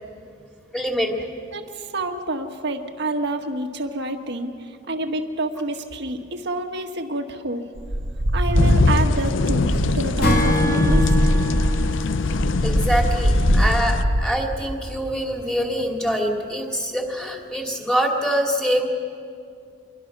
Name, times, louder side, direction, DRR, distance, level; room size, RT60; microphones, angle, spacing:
voice 1, 0.7-1.2 12.6-18.9, equal, 5° left, 0 dB, 2.7 m, -24 dB
voice 2, 1.5-7.6 8.3-11.1, right 1 dB, 60° right, 5 dB, 1.7 m, -28 dB
sound 1, 7.8-14.2, equal, 75° right, 1.5 m, -21 dB
sound 2, 8.5-14.0, left 4 dB, 70° left, 0.5 m, -24 dB
Acoustic guitar / Strum, 10.2-13.6, left 1 dB, 50° left, 3.1 m, -25 dB
27.0 x 23.0 x 6.2 m, 2.3 s
head